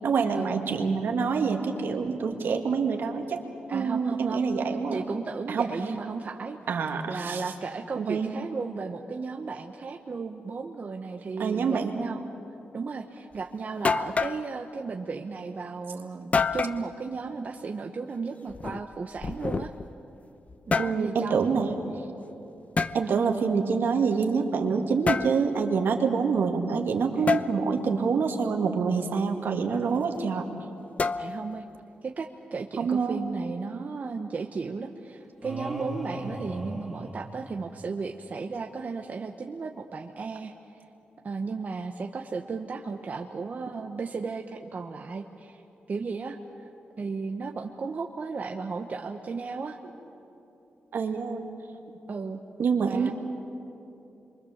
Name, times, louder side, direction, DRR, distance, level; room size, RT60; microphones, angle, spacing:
voice 1, 0.0-3.4 3.7-5.0 5.5-5.7 6.7-7.4 8.0-8.3 11.4-11.9 20.8-21.8 22.9-30.5 32.8-33.2 50.9-51.5 52.6-53.1, right 5 dB, 75° right, 3 dB, 2.1 m, -26 dB
voice 2, 3.7-4.4 4.9-6.6 7.1-12.2 12.7-19.7 20.7-21.7 23.0-23.2 27.2-27.5 31.2-31.7 32.0-40.5 41.2-45.6 45.9-46.7 47.0-49.8 52.1-52.4 52.8-53.1, right 4 dB, 50° right, 3 dB, 1.0 m, -35 dB
sound 1, 13.3-13.4 13.8-14.4 16.3-16.8 18.5-19.9 20.5-21.0 22.8-23.0 25.1-25.4 27.3-27.5 31.0-31.5, left 4 dB, 40° left, 0.7 m, -27 dB
sound 2, 35.4-37.9, right 1 dB, ahead, 3.2 m, -37 dB
27.0 x 23.5 x 7.3 m, 2.9 s
cardioid pair, 85°, 4 cm